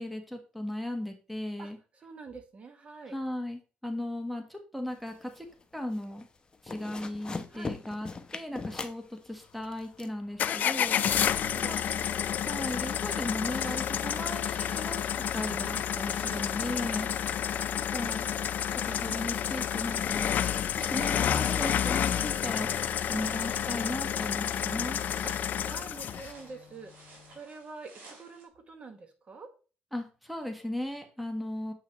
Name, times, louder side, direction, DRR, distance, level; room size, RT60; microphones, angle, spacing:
voice 1, 0.0-1.8 3.1-5.4 5.7-6.3 6.6-11.0 11.7-11.8 12.4-17.1 17.8-18.3 18.9-20.3 20.8-25.1 29.9-31.7, left 1 dB, ahead, 4 dB, 1.2 m, -37 dB
voice 2, 1.6-3.2 7.5-7.8 10.9-12.1 16.8-17.2 21.4-21.6 25.2-29.5, right 4 dB, 40° right, 6 dB, 1.4 m, -47 dB
sound 1, 5.0-5.6 5.9-6.2 6.5-10.1, left 4 dB, 25° left, 0.8 m, -39 dB
sound 2, 10.4-26.3, left 9 dB, 55° left, 0.4 m, -30 dB
sound 3, 12.6-28.5, right 3 dB, 65° right, 4.1 m, -55 dB
7.4 x 5.6 x 3.0 m, 0.35 s
cardioid pair, 105°, 3 cm